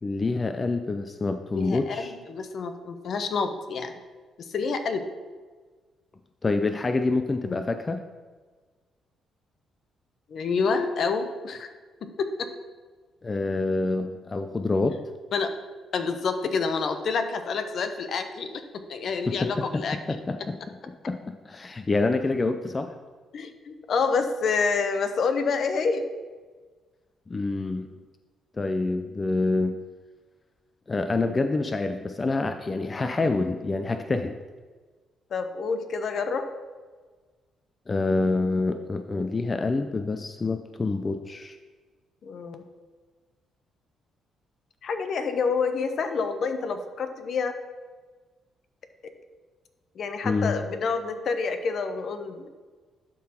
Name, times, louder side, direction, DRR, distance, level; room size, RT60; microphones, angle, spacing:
voice 1, 0.0-2.1 6.4-8.0 13.2-15.0 19.3-19.8 20.1-23.0 27.3-27.9 28.6-29.8 30.9-34.3 37.9-41.6 50.2-50.5, left 3 dB, 25° left, 7 dB, 0.4 m, -27 dB
voice 2, 1.5-3.9 4.4-5.1 7.5-7.6 10.3-11.7 12.0-12.5 15.3-15.5 15.9-20.0 23.3-26.1 35.3-36.5 42.2-42.6 44.8-47.6 49.0-49.1 50.0-52.5, left 5 dB, 60° left, 8 dB, 0.7 m, -28 dB
11.5 x 3.8 x 4.4 m, 1.4 s
cardioid pair, 90°, 0 cm